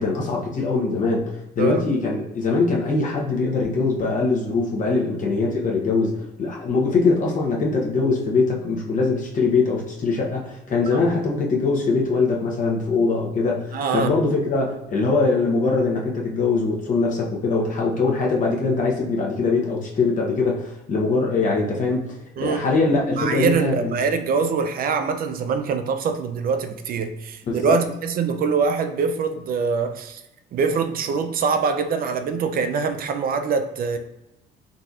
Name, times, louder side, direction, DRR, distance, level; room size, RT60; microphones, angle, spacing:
voice 1, 0.0-23.9 27.5-27.8, left 3 dB, 40° left, -2 dB, 0.9 m, -22 dB
voice 2, 13.7-14.1 22.4-22.7 23.1-30.2 30.5-34.0, right 5 dB, 50° right, 8 dB, 0.5 m, -24 dB
3.9 x 2.7 x 2.5 m, 0.95 s
cardioid pair, 105°, 19 cm